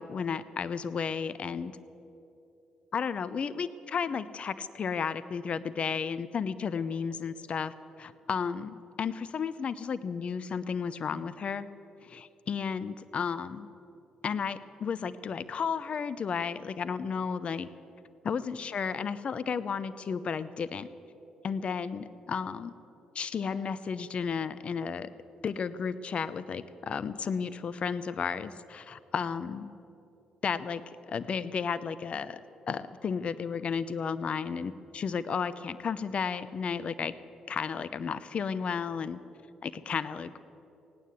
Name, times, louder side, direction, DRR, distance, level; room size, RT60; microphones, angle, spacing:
voice 1, 0.0-1.7 2.9-11.7 12.0-13.7 14.2-17.7 18.2-20.9 21.4-22.7 23.1-25.1 25.4-29.7 30.4-32.4 32.7-37.1 37.5-39.2 39.6-40.3, left 6 dB, 50° left, 14 dB, 0.7 m, -33 dB
17.0 x 9.5 x 8.2 m, 2.9 s
hypercardioid pair, 50°, 2 cm